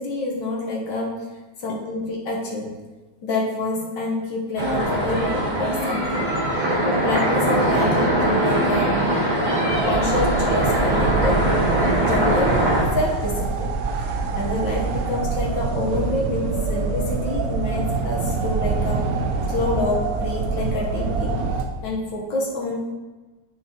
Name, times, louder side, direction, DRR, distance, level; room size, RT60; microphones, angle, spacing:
voice 1, 0.0-1.3 1.6-2.8 3.2-6.3 6.8-9.0 9.8-11.5 12.0-12.6 12.9-13.7 14.3-19.1 19.5-21.4 21.8-22.9, left 2 dB, 90° left, -3 dB, 1.9 m, -27 dB
sound 1, 4.6-12.8, right 1 dB, 25° right, 1.3 m, -21 dB
sound 2, 9.7-21.6, right 4 dB, 65° right, 1.0 m, -25 dB
10.0 x 6.4 x 2.9 m, 1.2 s
omnidirectional pair, 1.9 m